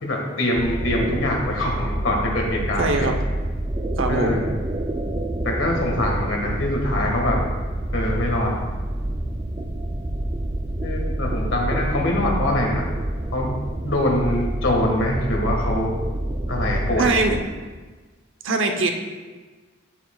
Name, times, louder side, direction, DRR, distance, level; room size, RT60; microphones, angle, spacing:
voice 1, 0.0-3.1 4.1-4.4 5.4-7.4 7.9-8.5 10.8-12.9 13.3-13.5 13.8-15.9 16.5-17.1, left 1 dB, 80° left, 0 dB, 1.7 m, -24 dB
sound 1, 0.6-17.4, right 1 dB, 25° right, 0.4 m, -27 dB
voice 2, 2.8-3.1 4.0-4.4 17.0-17.4 18.4-18.9, right 3 dB, 70° right, 4 dB, 0.8 m, -21 dB
9.1 x 8.2 x 2.4 m, 1.4 s
head